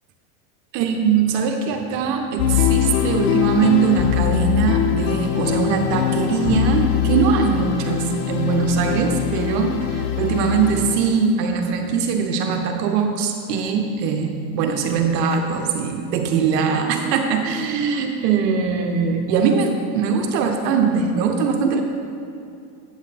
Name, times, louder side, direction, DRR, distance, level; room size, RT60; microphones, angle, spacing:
voice 1, 0.7-21.8, right 5 dB, 75° right, 4 dB, 1.1 m, -21 dB
sound 1, 2.4-11.1, left 11 dB, 70° left, 1.0 m, -22 dB
8.2 x 8.1 x 3.5 m, 2.6 s
hypercardioid pair, 95°, 49 cm